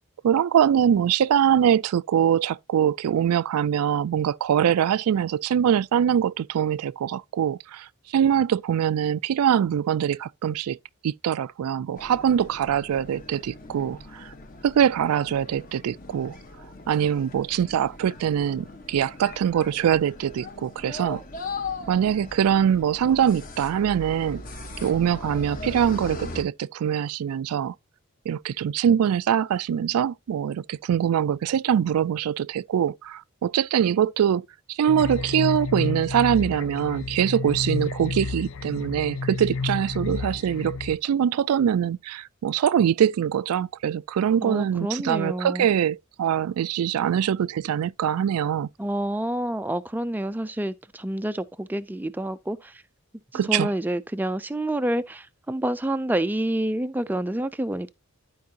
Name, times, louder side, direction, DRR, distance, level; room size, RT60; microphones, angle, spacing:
voice 1, 0.2-10.8 11.0-14.3 14.6-16.4 16.9-21.2 21.9-24.4 24.8-27.7 28.3-48.7 53.3-53.7, right 9 dB, 90° right, 0.3 m, -23 dB
sound 1, 12.0-26.4, left 3 dB, 40° left, 1.1 m, -39 dB
sound 2, 34.9-40.9, left 4 dB, 65° left, 0.7 m, -30 dB
voice 2, 44.4-45.7 48.8-52.8 53.5-57.9, right 1 dB, 10° right, 0.3 m, -28 dB
12.0 x 4.7 x 2.8 m
head